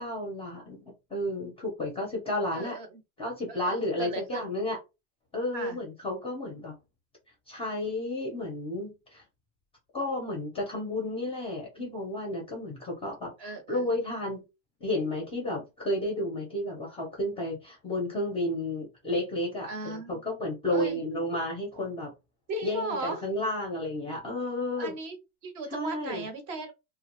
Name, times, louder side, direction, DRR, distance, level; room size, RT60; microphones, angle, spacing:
voice 1, 0.0-2.8 3.2-4.8 5.3-6.7 7.5-9.2 9.9-14.4 14.8-22.1 22.6-24.9 25.7-26.3, left 1 dB, 10° left, 0 dB, 0.5 m, -32 dB
voice 2, 2.5-2.9 3.5-4.5 5.5-5.8 13.4-13.9 19.7-20.2 20.7-21.0 22.5-23.2 24.8-26.7, right 2 dB, 35° right, 6 dB, 0.6 m, -37 dB
2.2 x 2.0 x 2.9 m, 0.25 s
supercardioid pair, 135°, 48 cm